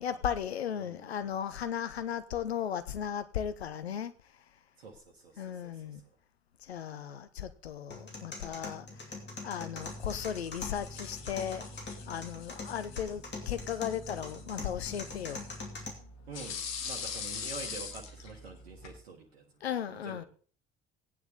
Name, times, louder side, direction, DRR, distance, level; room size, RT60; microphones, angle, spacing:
voice 1, 0.0-4.1 5.4-6.0 6.6-8.9 9.4-15.5 19.6-20.2, left 9 dB, 80° left, 0.7 m, -36 dB
voice 2, 0.8-1.2 4.8-5.8 16.3-19.4 19.9-20.2, right 4 dB, 75° right, 1.3 m, -47 dB
sound 1, 7.9-15.9, left 3 dB, 35° left, 2.8 m, -43 dB
sound 2, 9.7-19.0, left 5 dB, 55° left, 1.7 m, -44 dB
16.5 x 9.3 x 3.6 m
figure-of-eight pair, 50°, 31 cm